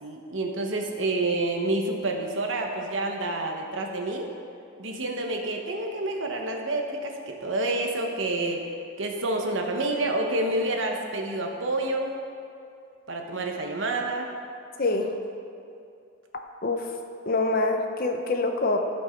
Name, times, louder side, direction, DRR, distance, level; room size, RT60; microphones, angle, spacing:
voice 1, 0.0-4.3 4.8-8.6 9.0-12.1 13.1-14.3, right 2 dB, 70° right, 2 dB, 1.1 m, -28 dB
voice 2, 14.8-15.2 16.6-16.9 17.3-18.8, left 2 dB, 45° left, 4 dB, 0.8 m, -25 dB
16.0 x 5.5 x 4.5 m, 2.5 s
head